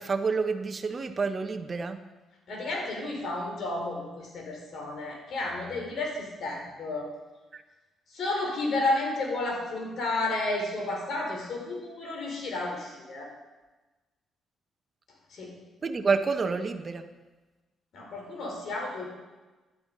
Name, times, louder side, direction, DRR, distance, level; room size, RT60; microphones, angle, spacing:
voice 1, 0.0-2.0 7.5-7.6 15.8-17.1, right 4 dB, 35° right, 7 dB, 1.3 m, -28 dB
voice 2, 2.5-7.1 8.1-13.3 15.3-15.6 17.9-19.1, left 2 dB, 65° left, 1 dB, 5.0 m, -32 dB
15.5 x 11.5 x 5.6 m, 1.2 s
cardioid pair, 90°, 0 cm